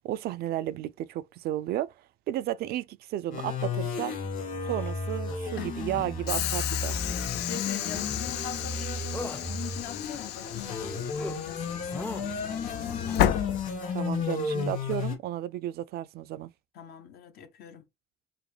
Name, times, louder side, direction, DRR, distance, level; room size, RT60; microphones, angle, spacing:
voice 1, 0.0-1.9 2.3-4.1 4.6-7.1 13.9-16.5, right 13 dB, 70° right, 0.4 m, -33 dB
sound 1, 3.3-15.1, left 4 dB, 50° left, 1.9 m, -33 dB
sound 2, 4.8-5.4 5.9-6.1 7.2-7.4 7.9-8.2 8.5-8.8 9.1-9.4 9.9-10.8 11.1-11.4 11.9-12.3 12.8-13.8 14.9-15.0, left 2 dB, 10° left, 0.5 m, -41 dB
Train / Sliding door, 6.3-14.2, left 12 dB, 85° left, 0.4 m, -33 dB
voice 2, 7.5-13.1 16.7-17.9, left 8 dB, 70° left, 0.8 m, -42 dB
4.9 x 2.1 x 3.3 m
cardioid pair, 110°, 17 cm